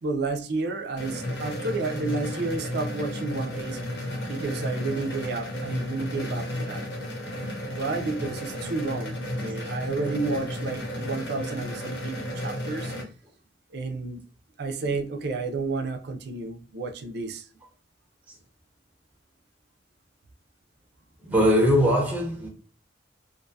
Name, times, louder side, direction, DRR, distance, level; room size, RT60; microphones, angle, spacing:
voice 1, 0.0-3.8 4.3-6.8 7.7-12.9 13.7-14.2 14.6-17.5, right 3 dB, 55° right, 0.4 m, -31 dB
sound 1, 1.0-13.0, left 1 dB, 65° left, 0.8 m, -33 dB
voice 2, 21.2-22.5, equal, 10° right, 0.5 m, -21 dB
2.5 x 2.2 x 2.6 m
head